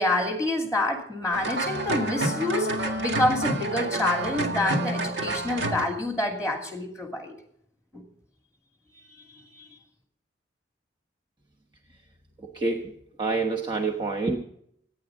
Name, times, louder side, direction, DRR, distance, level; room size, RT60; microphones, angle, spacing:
voice 1, 0.0-7.3 7.9-8.0 9.5-9.7, left 1 dB, 5° right, 1 dB, 2.3 m, -27 dB
sound 1, 1.3-5.9, right 2 dB, 70° right, 1.9 m, -28 dB
voice 2, 12.4-12.9 13.2-14.4, right 3 dB, 25° right, 1 dB, 1.1 m, -27 dB
25.5 x 9.5 x 3.8 m, 0.71 s
head